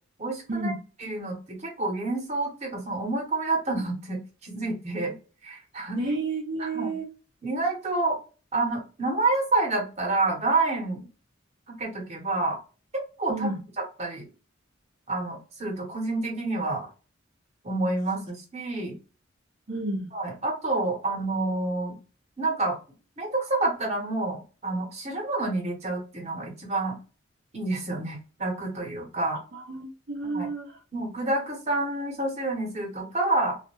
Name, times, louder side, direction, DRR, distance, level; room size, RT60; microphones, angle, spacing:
voice 1, 0.2-0.7 1.0-5.1 5.4-6.0 6.6-6.9 7.4-8.2 8.5-11.1 11.7-12.6 13.2-13.5 14.0-14.2 15.1-16.9 17.6-18.9 20.1-22.0 22.4-22.8 23.2-26.9 27.5-29.4 30.2-30.5 30.9-33.6, right 2 dB, 35° right, 1.0 m, -28 dB
voice 2, 5.9-7.1 13.3-13.6 19.7-20.1 29.5-30.8, right 2 dB, 55° right, 0.7 m, -31 dB
2.4 x 2.1 x 3.0 m
head